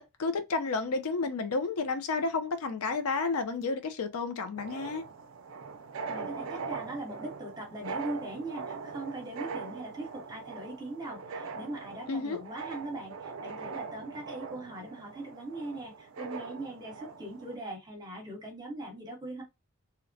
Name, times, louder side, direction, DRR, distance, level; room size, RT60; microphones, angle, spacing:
voice 1, 0.0-5.0 12.1-12.4, left 4 dB, 80° left, 0.5 m, -31 dB
sound 1, 4.6-17.6, right 5 dB, 65° right, 0.4 m, -41 dB
voice 2, 6.1-19.4, right 2 dB, 20° right, 0.9 m, -40 dB
2.8 x 2.1 x 2.6 m
head